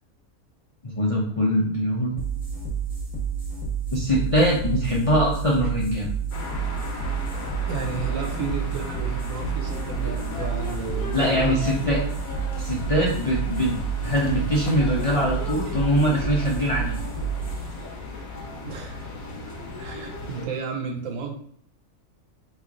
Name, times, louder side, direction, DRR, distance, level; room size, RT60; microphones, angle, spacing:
voice 1, 0.8-2.1 3.9-6.1 11.1-12.0 12.6-13.8 14.0-17.0, equal, 55° left, -4 dB, 0.3 m, -23 dB
sound 1, 2.2-19.2, right 5 dB, 5° right, 0.8 m, -30 dB
sound 2, 6.3-20.5, left 3 dB, 80° left, 1.3 m, -36 dB
voice 2, 7.7-11.9 18.6-19.1 19.8-21.4, right 5 dB, 75° right, 2 dB, 1.0 m, -32 dB
3.1 x 2.4 x 3.6 m, 0.63 s
omnidirectional pair, 1.4 m